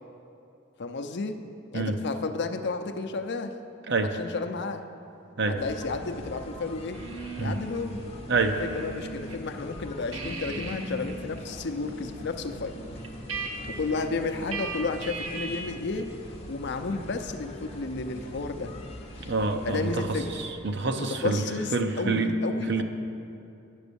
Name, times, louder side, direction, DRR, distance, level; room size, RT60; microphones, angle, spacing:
voice 1, 0.8-1.4 1.7-3.5 4.0-4.8 5.5-7.0 7.4-8.0 8.6-12.8 13.6-16.1 16.5-18.7 19.6-20.3 21.0-22.8, left 3 dB, 55° left, 7 dB, 0.6 m, -32 dB
sound 1, 5.6-20.5, left 1 dB, 30° left, 1.0 m, -42 dB
sound 2, 6.9-9.4 9.7-15.9, right 2 dB, 90° right, 1.1 m, -39 dB
voice 2, 19.2-20.1 20.4-21.4 21.7-22.3 22.7-22.8, right 3 dB, 60° right, 6 dB, 0.7 m, -27 dB
9.9 x 7.1 x 6.9 m, 2.8 s
head